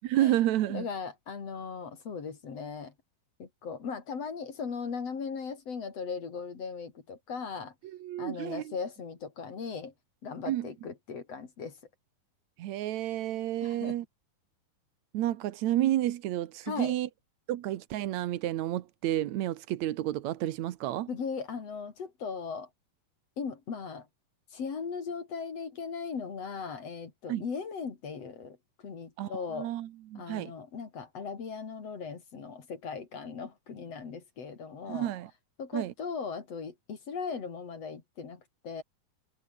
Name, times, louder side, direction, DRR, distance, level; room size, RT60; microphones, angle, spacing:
voice 1, 0.0-0.9 7.8-8.7 10.5-10.7 12.6-14.1 15.1-17.1 17.5-21.1 27.3-27.4 29.2-30.5 34.9-35.3 35.7-35.9, right 13 dB, 65° right, 2.0 m, -30 dB
voice 2, 0.7-2.9 3.4-7.7 8.2-9.9 10.2-11.8 13.6-14.0 16.6-17.0 21.1-22.7 23.4-24.1 24.5-28.6 28.8-29.7 30.2-35.1 35.6-38.8, left 5 dB, 45° left, 3.9 m, -38 dB
omnidirectional pair, 4.0 m